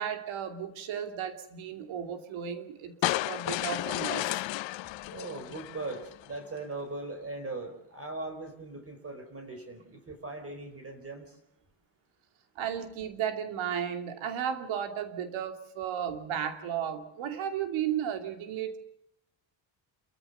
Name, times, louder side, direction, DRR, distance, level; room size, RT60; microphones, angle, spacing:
voice 1, 0.0-4.3 12.6-18.8, right 9 dB, 90° right, 7 dB, 2.7 m, -34 dB
sound 1, 3.0-6.3, left 17 dB, 70° left, 0.7 m, -32 dB
voice 2, 5.1-11.4, right 2 dB, 30° right, 6 dB, 4.6 m, -39 dB
28.0 x 14.5 x 6.9 m, 0.75 s
cardioid pair, 100°, 46 cm